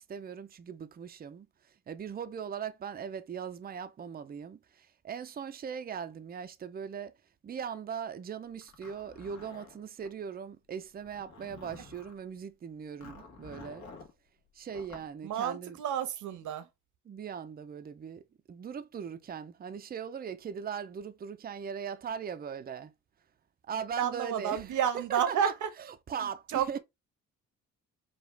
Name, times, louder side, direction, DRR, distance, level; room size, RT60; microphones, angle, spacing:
voice 1, 0.0-1.5 1.9-7.1 7.4-13.9 14.5-15.8 17.1-22.9 23.6-25.5 26.1-26.8, right 7 dB, 30° right, 0.5 m, -39 dB
Zipper (clothing), 8.6-10.1 11.0-12.2 13.0-14.1 14.7-15.1, left 4 dB, 65° left, 1.5 m, -50 dB
voice 2, 15.2-16.6 24.0-25.7 26.2-26.8, right 9 dB, 80° right, 1.1 m, -31 dB
4.9 x 2.4 x 3.2 m
cardioid pair, 90°, 30 cm